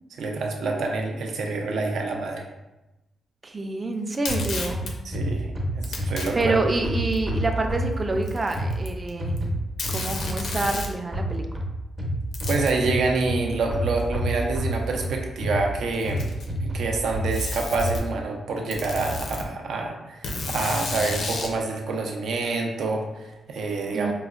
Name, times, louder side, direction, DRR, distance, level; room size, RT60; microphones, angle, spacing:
voice 1, 0.2-2.4 5.0-6.6 12.5-16.3 16.6-24.1, right 3 dB, 80° right, 1 dB, 0.5 m, -27 dB
voice 2, 3.4-4.9 6.3-9.4 9.9-11.5 23.9-24.1, right 2 dB, 25° right, 4 dB, 0.3 m, -27 dB
Packing tape duct tape, 4.1-4.9 5.8-6.3 7.1-7.2 8.2-9.1 9.4-9.5 9.8-11.0 12.3-12.8 14.0-14.1 15.0-15.1 15.9-16.6 17.3-18.0 18.7-19.5 20.2-21.6, left 2 dB, 70° left, 0.5 m, -31 dB
sound 1, 4.3-10.3 11.1-18.0, right 1 dB, 45° right, 0.8 m, -29 dB
4.6 x 2.0 x 2.4 m, 1.0 s
wide cardioid pair, 130°, 0 cm